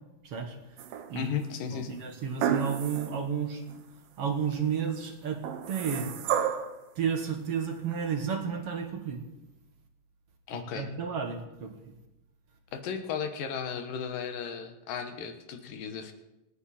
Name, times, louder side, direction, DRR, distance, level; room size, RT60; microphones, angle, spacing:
voice 1, 0.2-0.6 1.1-1.3 1.7-3.6 4.2-6.5 7.0-9.2 10.5-11.9, right 7 dB, 55° right, 4 dB, 1.9 m, -32 dB
sound 1, 0.8-1.4 2.4-3.2 3.7-3.8 5.4-6.8 7.9-8.0, right 9 dB, 80° right, 2.8 m, -31 dB
voice 2, 1.1-2.0 10.5-10.9 12.7-16.1, left 7 dB, 70° left, 7 dB, 2.8 m, -35 dB
27.5 x 9.8 x 4.3 m, 0.96 s
omnidirectional pair, 4.3 m